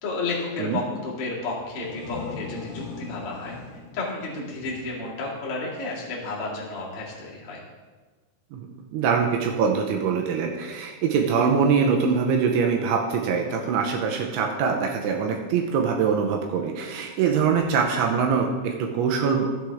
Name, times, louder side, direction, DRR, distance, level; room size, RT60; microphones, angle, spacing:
voice 1, 0.0-3.6 3.9-7.6, left 3 dB, 40° left, -6 dB, 2.2 m, -32 dB
sound 1, 1.6-5.2, left 4 dB, 65° left, 1.7 m, -39 dB
voice 2, 8.9-19.5, right 6 dB, 80° right, 1 dB, 2.9 m, -23 dB
14.5 x 7.8 x 3.5 m, 1.4 s
omnidirectional pair, 5.8 m